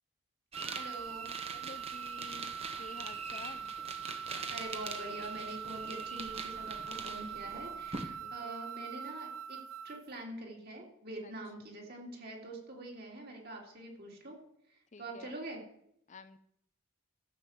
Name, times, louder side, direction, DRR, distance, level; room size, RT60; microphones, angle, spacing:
sound 1, 0.5-8.1, right 4 dB, 30° right, 1.1 m, -44 dB
sound 2, 0.5-10.1, right 7 dB, 65° right, 0.4 m, -43 dB
voice 1, 0.7-1.3 4.5-9.6 9.8-14.4 14.7-15.6, right 2 dB, 45° right, 0 dB, 3.3 m, -45 dB
voice 2, 1.5-3.7 8.2-8.6 11.2-11.3 14.9-15.4 16.1-16.4, left 4 dB, 35° left, 12 dB, 0.5 m, -51 dB
13.5 x 7.3 x 7.5 m, 0.74 s
head